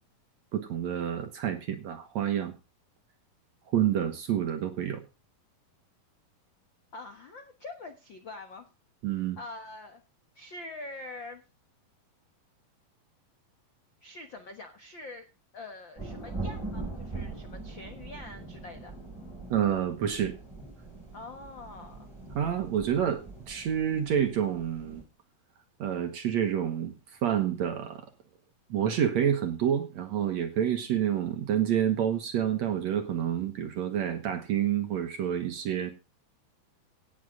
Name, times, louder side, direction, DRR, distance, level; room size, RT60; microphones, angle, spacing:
voice 1, 0.5-2.5 3.7-5.0 9.0-9.4 19.5-20.4 22.4-25.0 25.8-26.9 27.2-28.0 28.7-35.9, right 9 dB, 60° right, 7 dB, 2.0 m, -28 dB
voice 2, 6.9-8.6 9.4-10.0 10.3-11.4 14.0-15.3 15.5-19.0 21.1-22.1, left 2 dB, 65° left, 7 dB, 1.1 m, -44 dB
sound 1, 16.0-25.0, right 3 dB, 5° right, 6.0 m, -42 dB
17.5 x 8.7 x 3.7 m, 0.29 s
omnidirectional pair, 4.3 m